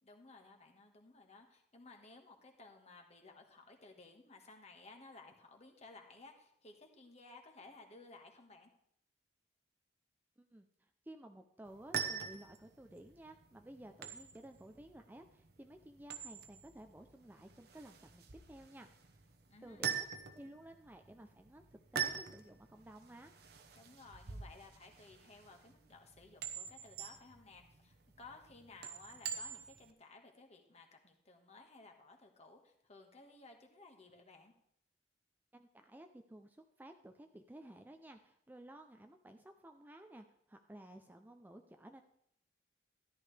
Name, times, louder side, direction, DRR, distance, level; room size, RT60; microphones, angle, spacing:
voice 1, 0.0-8.7 19.5-19.9 23.8-34.5, left 3 dB, 35° left, 3 dB, 1.6 m, -57 dB
voice 2, 10.4-18.9 19.6-20.1 20.3-23.3 35.5-42.0, right 1 dB, 10° right, 5 dB, 0.5 m, -55 dB
sound 1, 11.7-29.9, right 7 dB, 60° right, 1.0 m, -45 dB
13.5 x 11.5 x 3.3 m, 0.71 s
head